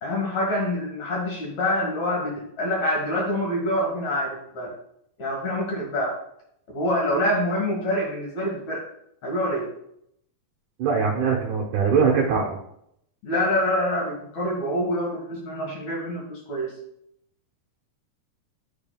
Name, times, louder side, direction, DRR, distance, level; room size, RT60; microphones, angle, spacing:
voice 1, 0.0-4.8 5.2-6.2 6.7-8.9 9.2-9.7 13.2-16.8, left 1 dB, 60° left, -2 dB, 2.0 m, -26 dB
voice 2, 10.8-12.5, right 5 dB, 70° right, -3 dB, 1.9 m, -21 dB
11.0 x 5.2 x 2.3 m, 0.74 s
omnidirectional pair, 4.7 m